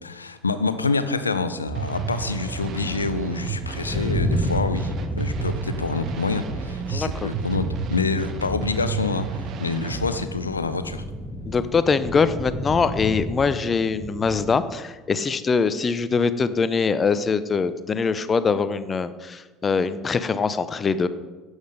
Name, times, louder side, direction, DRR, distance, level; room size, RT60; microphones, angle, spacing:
voice 1, 0.0-11.0, left 4 dB, 85° left, 11 dB, 0.6 m, -27 dB
sound 1, 1.7-10.3, right 6 dB, 45° right, 1.1 m, -31 dB
sound 2, 1.9-14.5, left 1 dB, ahead, 2.1 m, -32 dB
voice 2, 6.9-7.3 11.5-21.1, left 5 dB, 30° left, 13 dB, 0.7 m, -23 dB
11.5 x 8.2 x 5.1 m, 1.3 s
figure-of-eight pair, 65°, 0 cm